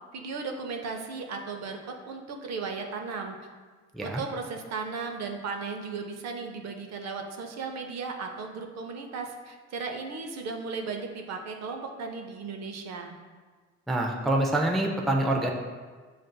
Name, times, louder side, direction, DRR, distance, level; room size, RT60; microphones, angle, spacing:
voice 1, 0.1-3.4 4.0-13.2, right 4 dB, 60° right, 4 dB, 0.6 m, -36 dB
voice 2, 13.9-15.5, right 1 dB, ahead, 0 dB, 0.3 m, -26 dB
6.5 x 2.5 x 2.2 m, 1.4 s
cardioid pair, 90°, 30 cm